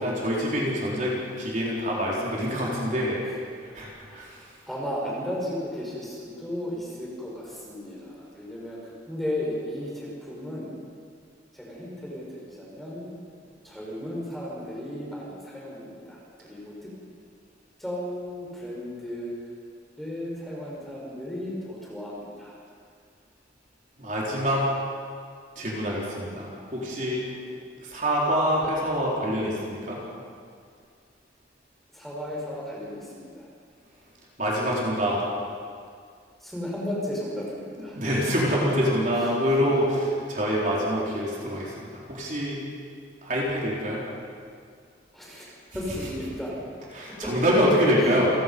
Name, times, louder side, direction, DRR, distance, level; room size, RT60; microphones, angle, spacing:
voice 1, 0.0-3.2 3.6-4.5 24.0-24.7 25.6-27.2 27.8-30.0 34.4-35.2 38.0-42.6 43.2-44.0 46.9-48.3, equal, 40° right, -5 dB, 4.3 m, -26 dB
voice 2, 4.7-10.7 11.5-13.1 13.6-16.9 17.8-19.3 20.0-22.6 27.4-27.6 31.9-33.5 36.4-38.0 45.1-46.5 47.2-47.4 48.0-48.1, left 1 dB, ahead, -5 dB, 5.0 m, -35 dB
29.0 x 17.0 x 5.5 m, 2.2 s
head